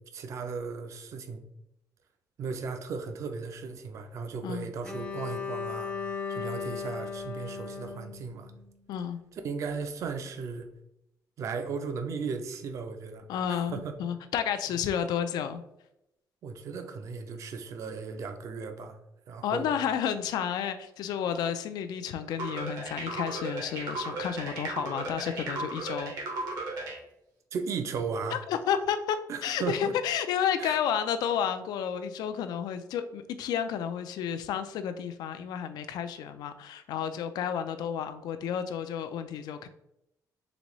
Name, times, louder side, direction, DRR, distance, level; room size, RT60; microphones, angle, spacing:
voice 1, 0.1-1.4 2.4-8.5 9.3-10.7 11.4-13.2 13.7-13.9 16.4-19.0 19.3-19.7 27.5-28.4 29.3-29.9 30.6-30.8, right 5 dB, 50° right, 7 dB, 0.5 m, -36 dB
Bowed string instrument, 4.8-8.9, left 5 dB, 20° left, 0.5 m, -37 dB
voice 2, 13.3-15.6 19.4-26.1 28.3-39.7, left 8 dB, 80° left, 9 dB, 0.3 m, -31 dB
sound 1, 22.4-27.0, right 2 dB, 80° right, 1.2 m, -35 dB
4.0 x 3.5 x 3.0 m, 0.83 s
cardioid pair, 165°, 7 cm